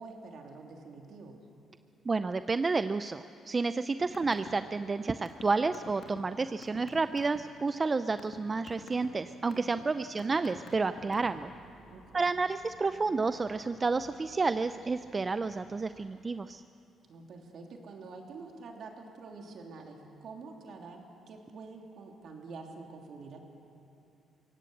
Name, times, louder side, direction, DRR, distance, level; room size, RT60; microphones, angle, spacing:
voice 1, 0.0-1.4 9.5-10.0 11.9-12.4 17.1-23.4, right 4 dB, 65° right, 2 dB, 3.1 m, -47 dB
voice 2, 2.1-11.5 12.1-16.6, right 4 dB, 30° right, 11 dB, 0.5 m, -30 dB
sound 1, 4.0-4.5 4.8-7.4 7.9-8.4 8.7-9.1 9.5-9.8 10.2-11.5, left 6 dB, 60° left, 2.9 m, -46 dB
sound 2, 10.6-16.1, right 2 dB, 85° right, 4.9 m, -58 dB
23.5 x 17.5 x 7.9 m, 2.9 s
cardioid pair, 90°, 0 cm